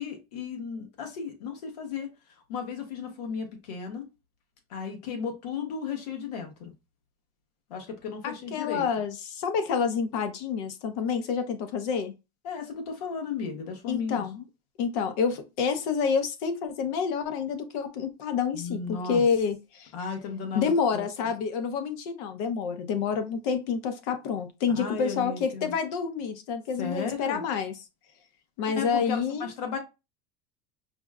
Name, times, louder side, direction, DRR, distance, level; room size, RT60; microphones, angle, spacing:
voice 1, 0.0-2.1 2.5-4.1 4.7-6.7 7.7-8.9 12.4-14.2 18.5-19.2 19.9-21.0 24.8-25.7 26.8-27.4 28.7-29.8, left 6 dB, 90° left, 1.1 m, -35 dB
voice 2, 8.2-12.1 13.9-14.4 14.8-19.9 20.5-27.7 28.6-29.5, left 6 dB, 70° left, 0.8 m, -28 dB
5.0 x 2.1 x 2.4 m
supercardioid pair, 135°, 20 cm